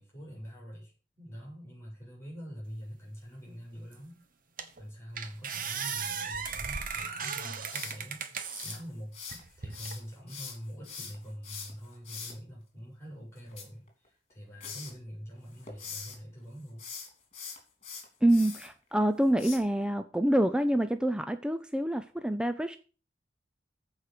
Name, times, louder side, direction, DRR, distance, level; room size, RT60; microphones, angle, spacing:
voice 1, 0.0-4.2 4.8-16.8, equal, 15° left, 4.8 m, -45 dB
sound 1, 3.9-4.0 4.6-4.8 5.2-8.8 9.3-10.0, right 6 dB, 50° right, 1.2 m, -36 dB
sound 2, 7.7-9.4 9.7-12.3 13.4-14.3 14.6-14.9 15.4-16.2 16.7-18.7 19.4-19.6, left 5 dB, 35° left, 3.1 m, -42 dB
voice 2, 18.2-22.8, right 1 dB, 5° right, 0.5 m, -26 dB
14.0 x 4.9 x 6.6 m
head